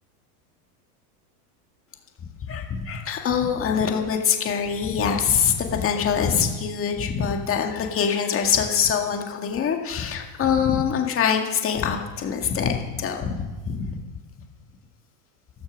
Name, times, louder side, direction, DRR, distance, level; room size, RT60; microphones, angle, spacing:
voice 1, 2.4-14.0, left 7 dB, 30° left, 3 dB, 2.0 m, -24 dB
13.5 x 12.5 x 6.2 m, 1.2 s
supercardioid pair, 130°, 47 cm